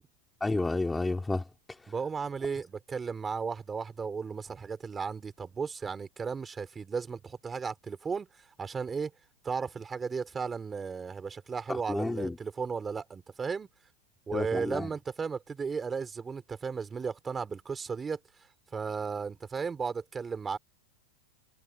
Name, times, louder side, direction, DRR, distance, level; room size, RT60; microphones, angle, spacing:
voice 1, 0.4-1.4 11.9-12.4 14.3-14.9, left 2 dB, 5° left, 2.3 m, -30 dB
voice 2, 1.9-8.3 8.6-9.1 9.4-13.7 14.3-18.2 18.7-20.6, right 5 dB, 15° right, 3.1 m, -35 dB
supercardioid pair, 150°, 0 cm